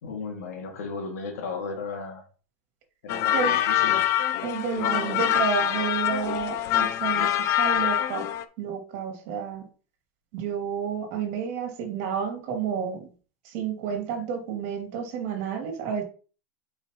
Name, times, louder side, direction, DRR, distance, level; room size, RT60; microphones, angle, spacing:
voice 1, 0.0-2.2 3.0-4.1, left 4 dB, 75° left, 3 dB, 2.3 m, -35 dB
sound 1, 3.1-8.4, left 11 dB, 35° left, 0.6 m, -25 dB
voice 2, 4.4-8.2 8.6-9.7 10.3-13.1 13.4-16.0, right 7 dB, 45° right, 3 dB, 2.5 m, -30 dB
8.1 x 4.9 x 3.0 m, 0.39 s
supercardioid pair, 155°, 8 cm